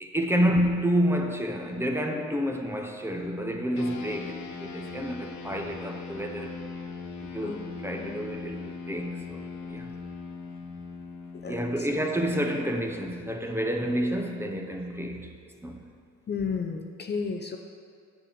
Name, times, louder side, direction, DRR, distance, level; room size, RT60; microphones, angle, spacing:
voice 1, 0.0-6.5 7.2-9.4 9.7-9.9 11.5-15.3 15.6-15.8, equal, 10° right, 3 dB, 0.9 m, -29 dB
sound 1, 3.8-13.5, left 4 dB, 70° left, 1.1 m, -40 dB
voice 2, 11.4-11.9 16.3-17.6, left 5 dB, 35° left, 4 dB, 0.6 m, -33 dB
6.5 x 6.0 x 7.4 m, 2.2 s
cardioid pair, 90°, 30 cm